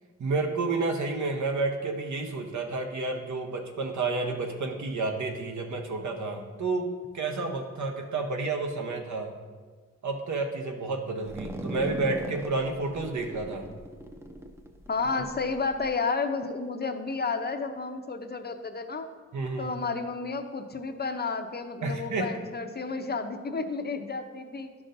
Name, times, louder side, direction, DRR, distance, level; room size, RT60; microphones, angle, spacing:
voice 1, 0.2-9.3 10.0-13.7 19.3-19.8 21.8-22.3, right 3 dB, 80° right, 2 dB, 0.9 m, -30 dB
sound 1, 11.2-15.9, right 1 dB, 10° right, 0.5 m, -39 dB
voice 2, 14.9-19.1 19.6-24.7, left 4 dB, 35° left, 7 dB, 0.6 m, -31 dB
11.5 x 6.0 x 2.6 m, 1.5 s
wide cardioid pair, 95°, 29 cm